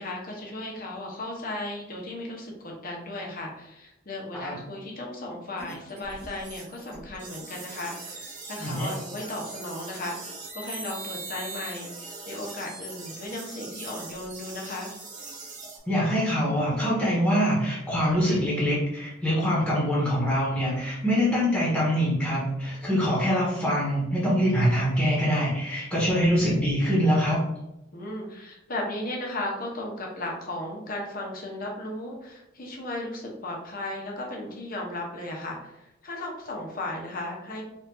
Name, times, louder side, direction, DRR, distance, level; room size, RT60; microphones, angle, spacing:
voice 1, 0.0-14.9 27.9-37.6, left 1 dB, 45° left, -1 dB, 0.9 m, -35 dB
sound 1, 5.6-15.8, right 3 dB, 40° right, 1.0 m, -41 dB
voice 2, 8.6-8.9 15.9-27.4, equal, 5° left, -7 dB, 1.1 m, -24 dB
4.4 x 2.5 x 2.7 m, 0.88 s
head